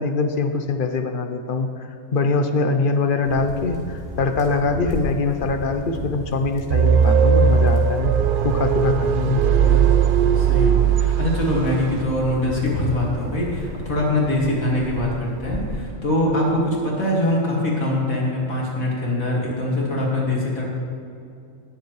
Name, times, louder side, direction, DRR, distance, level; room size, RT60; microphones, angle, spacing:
voice 1, 0.0-8.1 8.4-9.4, left 3 dB, 50° left, 7 dB, 0.7 m, -23 dB
sound 1, 3.2-15.9, left 1 dB, 50° right, 2.5 m, -34 dB
sound 2, 6.7-11.7, right 7 dB, 70° right, 0.5 m, -18 dB
voice 2, 9.2-9.8 10.4-20.7, left 1 dB, 85° left, -3 dB, 2.5 m, -23 dB
18.5 x 7.2 x 3.2 m, 2.5 s
omnidirectional pair, 1.4 m